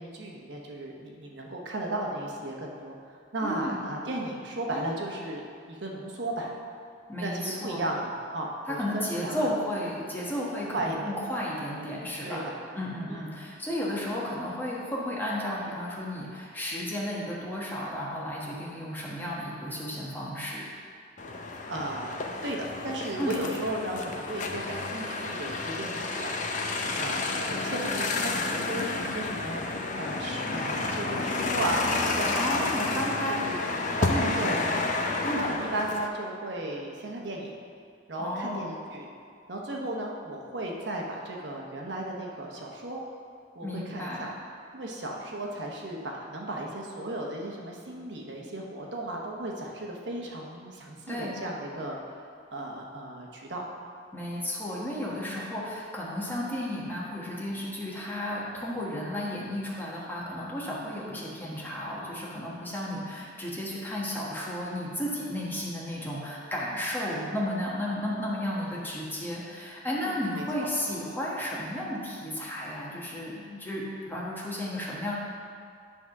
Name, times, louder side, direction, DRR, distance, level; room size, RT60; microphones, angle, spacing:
voice 1, 0.0-3.0 3.3-6.5 7.2-9.5 10.7-11.1 12.2-12.5 13.1-13.2 21.7-26.3 27.0-29.6 29.9-33.0 33.3-33.7 34.0-34.8 35.3-37.5 38.1-39.1 39.5-43.0 43.5-44.3 44.7-52.2 52.5-53.6 70.0-70.7, right 1 dB, 70° right, -1 dB, 1.0 m, -35 dB
voice 2, 3.4-3.8 7.1-7.9 8.7-12.4 12.7-20.7 23.2-23.4 32.3-33.4 34.1-34.3 35.2-35.4 38.2-38.7 43.6-44.3 51.1-51.4 54.1-75.1, left 1 dB, 10° left, -5 dB, 1.3 m, -33 dB
sound 1, 21.2-36.1, left 3 dB, 45° left, 0.6 m, -30 dB
10.0 x 3.6 x 5.9 m, 2.2 s
head